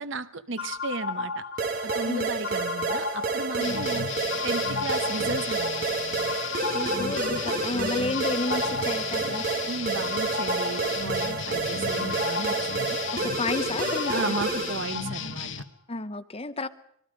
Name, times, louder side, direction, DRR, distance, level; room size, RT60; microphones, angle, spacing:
voice 1, 0.0-1.5 1.8-4.1 4.4-5.9 9.7-13.0 14.1-15.5, right 3 dB, 60° right, 1.0 m, -34 dB
sound 1, 0.6-15.3, left 4 dB, 80° left, 2.5 m, -35 dB
sound 2, 1.6-14.9, right 4 dB, 40° right, 1.6 m, -30 dB
sound 3, 3.6-15.6, left 7 dB, 60° left, 1.2 m, -35 dB
voice 2, 6.7-9.5 13.1-14.3 15.9-16.7, left 2 dB, 25° left, 0.8 m, -31 dB
25.5 x 22.0 x 5.2 m
head